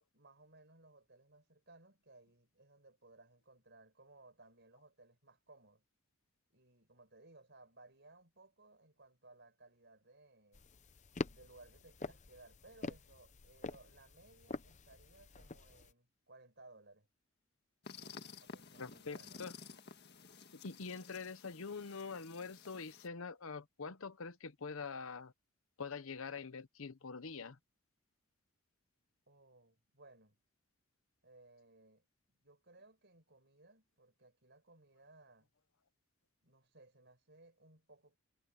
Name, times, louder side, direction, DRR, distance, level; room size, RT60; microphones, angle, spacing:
voice 1, 0.1-5.8 6.5-10.7 11.3-17.1 18.4-19.4 29.3-30.4 31.2-32.0 32.4-35.5 36.4-38.2, right 2 dB, 50° right, 5.7 m, -62 dB
sound 1, 10.5-15.9, left 3 dB, 35° left, 0.7 m, -46 dB
sound 2, 17.8-23.1, left 4 dB, 50° left, 1.7 m, -53 dB
voice 2, 18.8-19.5 20.6-25.3 25.8-27.5, left 5 dB, 65° left, 0.9 m, -45 dB
head